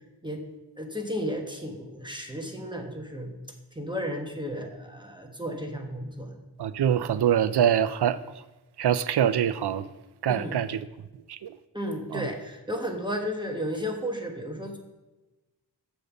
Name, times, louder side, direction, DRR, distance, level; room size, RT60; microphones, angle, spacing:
voice 1, 0.8-3.4 3.7-6.4 10.3-10.6 11.7-14.8, equal, 10° right, 2 dB, 1.1 m, -33 dB
voice 2, 6.6-8.2 8.8-9.9 10.2-10.9 11.3-11.6 12.1-12.3, right 9 dB, 65° right, 13 dB, 0.5 m, -24 dB
6.7 x 5.3 x 6.9 m, 1.1 s
wide cardioid pair, 75°, 42 cm